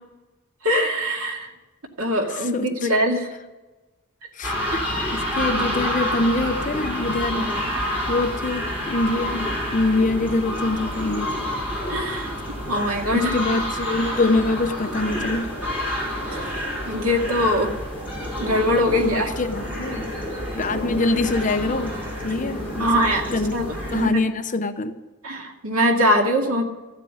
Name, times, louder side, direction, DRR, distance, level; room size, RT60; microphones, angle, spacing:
voice 1, 0.6-1.5 2.0-3.3 11.9-12.3 12.7-13.3 16.3-16.4 16.9-17.7 18.4-19.3 22.8-24.1 25.2-26.6, equal, 85° right, 2 dB, 2.2 m, -22 dB
voice 2, 2.3-2.9 4.3-4.9 5.1-7.5 8.1-11.3 13.1-15.5 19.0-20.0 20.6-22.0 22.2-23.6 23.9-25.0, left 2 dB, 40° left, 7 dB, 0.9 m, -24 dB
sound 1, 4.4-24.1, equal, 10° right, 5.1 m, -28 dB
14.5 x 7.6 x 9.7 m, 1.2 s
head